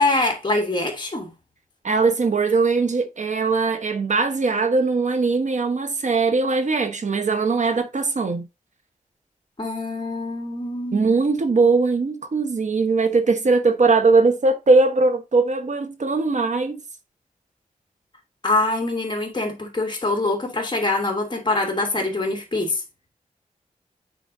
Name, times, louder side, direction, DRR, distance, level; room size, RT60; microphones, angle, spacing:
voice 1, 0.0-1.3 9.6-11.2 18.4-22.8, left 2 dB, 35° left, 2.7 m, -24 dB
voice 2, 1.8-8.5 10.9-16.8, right 3 dB, 60° right, 1.1 m, -20 dB
9.1 x 4.4 x 2.7 m
wide cardioid pair, 80°, 14 cm